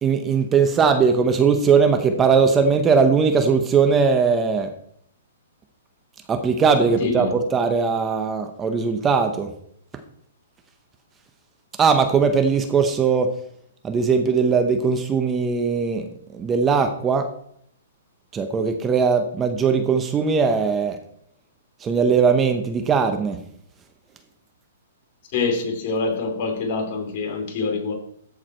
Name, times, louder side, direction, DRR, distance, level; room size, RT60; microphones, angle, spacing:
voice 1, 0.0-4.7 6.3-9.5 11.8-13.3 13.8-16.1 16.3-17.3 18.3-21.0 21.8-23.4, right 5 dB, 15° right, 0.8 m, -19 dB
voice 2, 7.0-7.3 25.3-27.9, left 4 dB, 45° left, 2.8 m, -25 dB
14.0 x 4.9 x 4.4 m
hypercardioid pair, 140°, 0 cm